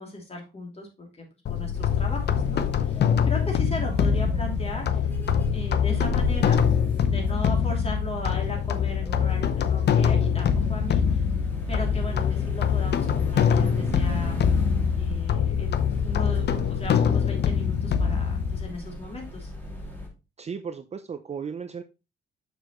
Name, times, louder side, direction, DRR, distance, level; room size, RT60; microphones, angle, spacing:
voice 1, 0.0-5.0 5.5-6.6 7.0-11.2 11.7-14.4 15.0-19.5, left 1 dB, 30° left, 1 dB, 2.9 m, -37 dB
sound 1, 1.5-18.7, left 8 dB, 60° left, 0.7 m, -24 dB
sound 2, 1.7-20.1, equal, 10° left, 2.6 m, -36 dB
voice 2, 20.4-21.8, right 6 dB, 35° right, 8 dB, 0.6 m, -35 dB
6.7 x 6.3 x 3.1 m, 0.29 s
cardioid pair, 90°, 20 cm